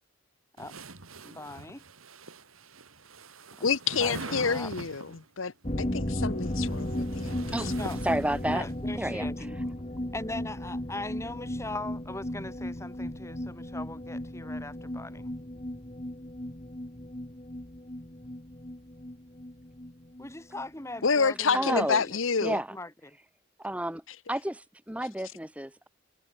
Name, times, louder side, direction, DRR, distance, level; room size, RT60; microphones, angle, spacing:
sound 1, 0.6-5.2 6.2-8.7, right 2 dB, 85° right, 3.8 m, -43 dB
voice 1, 1.2-1.8 3.6-3.7 4.0-4.7 7.8-8.0 8.5-9.6 10.1-15.3 20.2-21.8 22.5-22.9, left 2 dB, 15° left, 1.4 m, -40 dB
voice 2, 3.6-7.3 7.6-7.7 21.0-22.6, left 5 dB, 75° left, 1.0 m, -28 dB
sound 2, 5.6-21.0 21.3-21.4 21.7-21.8, left 1 dB, 30° left, 1.5 m, -35 dB
voice 3, 8.0-8.6 9.0-9.3 21.5-22.0 22.4-22.7 23.6-24.0 24.3-25.9, right 1 dB, 5° right, 1.7 m, -30 dB
head